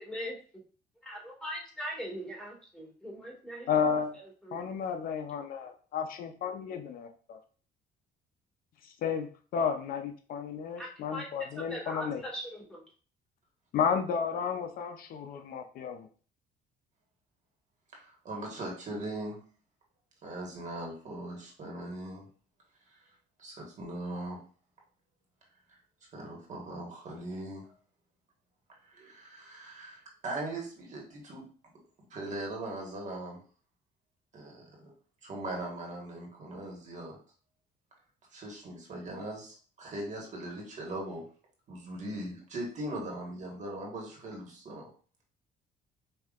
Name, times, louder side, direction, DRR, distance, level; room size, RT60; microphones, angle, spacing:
voice 1, 0.0-0.3 1.1-3.7 4.4-4.7 10.8-11.3 11.6-12.8, equal, 5° left, -3 dB, 1.7 m, -40 dB
voice 2, 3.7-4.2 4.5-7.4 9.0-9.3 9.5-12.2 13.7-16.1, left 7 dB, 60° left, 6 dB, 0.6 m, -32 dB
voice 3, 17.9-19.4 20.2-22.3 22.9-23.0 23.4-24.4 26.1-27.7 28.9-31.4 32.1-33.4 34.3-34.7 35.2-37.2 38.3-41.2 41.7-44.9, right 1 dB, 45° right, -1 dB, 1.5 m, -40 dB
5.5 x 2.7 x 2.4 m, 0.40 s
cardioid pair, 110°, 17 cm